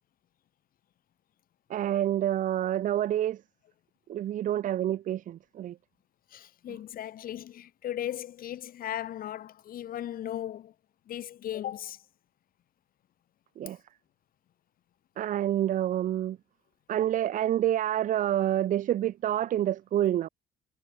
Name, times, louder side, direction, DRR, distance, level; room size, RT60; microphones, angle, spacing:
voice 1, 1.7-3.4 4.1-5.7 13.6-13.8 15.2-16.4 16.9-20.3, right 12 dB, 50° right, 0.6 m, -28 dB
voice 2, 6.3-10.7 11.1-12.0, left 11 dB, 60° left, 1.9 m, -37 dB
cardioid pair, 110°, 17 cm